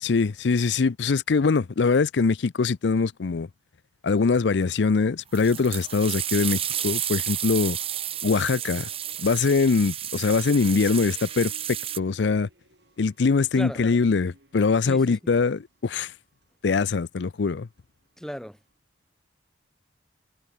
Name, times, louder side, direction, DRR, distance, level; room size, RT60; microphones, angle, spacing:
voice 1, 0.0-3.5 4.0-7.8 8.2-8.9 9.2-12.5 13.0-16.1 16.6-17.7, left 4 dB, 80° left, 0.5 m, -23 dB
sound 1, 5.3-12.0, right 11 dB, 30° right, 1.7 m, -31 dB
sound 2, 5.5-18.7, right 2 dB, 70° right, 5.4 m, -56 dB
voice 2, 14.9-15.3 18.2-18.6, equal, 5° left, 2.0 m, -36 dB
head